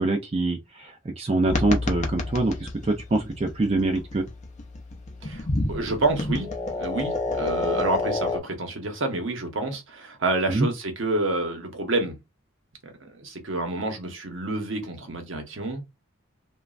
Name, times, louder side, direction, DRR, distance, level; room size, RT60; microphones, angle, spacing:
voice 1, 0.0-4.2 10.5-10.7, right 2 dB, 30° right, 0.4 m, -25 dB
sound 1, 1.5-8.4, left 2 dB, 35° left, 0.5 m, -30 dB
voice 2, 5.2-6.5 6.8-12.2 12.8-15.8, right 2 dB, 70° right, 0.9 m, -28 dB
3.0 x 2.3 x 2.3 m
head